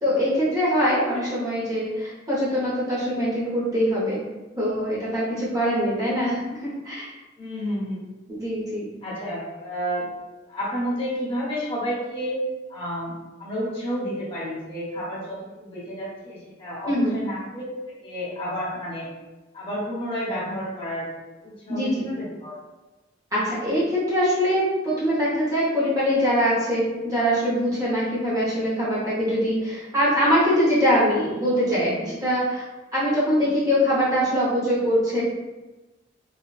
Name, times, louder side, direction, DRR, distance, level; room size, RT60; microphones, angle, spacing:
voice 1, 0.0-4.2 4.6-7.1 8.3-8.9 16.8-17.1 21.7-22.0 23.3-32.6 32.9-35.2, equal, 20° right, -9 dB, 0.7 m, -23 dB
voice 2, 7.4-8.0 9.0-10.0 10.5-12.4 12.7-13.1 13.4-17.7 18.0-19.1 19.5-21.0 21.4-22.5, equal, 25° left, -8 dB, 1.0 m, -30 dB
3.4 x 2.2 x 2.3 m, 1.1 s
head